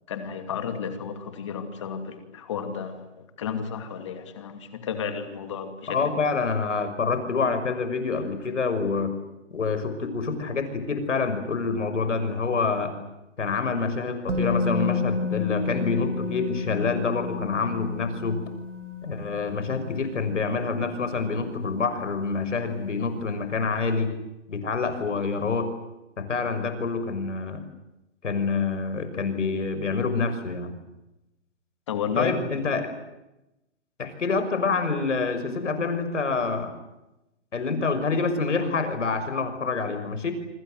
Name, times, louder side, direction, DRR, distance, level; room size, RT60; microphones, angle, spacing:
voice 1, 0.1-6.2 31.9-32.6, left 6 dB, 25° left, 7 dB, 2.6 m, -32 dB
voice 2, 5.9-9.1 9.5-12.9 13.4-18.4 19.0-24.1 24.5-25.7 26.2-27.6 28.2-30.7 32.2-32.9 34.0-36.7 37.5-40.3, left 4 dB, 80° left, 9 dB, 6.4 m, -27 dB
Musical instrument, 14.3-22.2 22.5-22.6, left 5 dB, 85° right, 5.6 m, -31 dB
27.5 x 25.5 x 7.9 m, 0.94 s
hypercardioid pair, 180°, 36 cm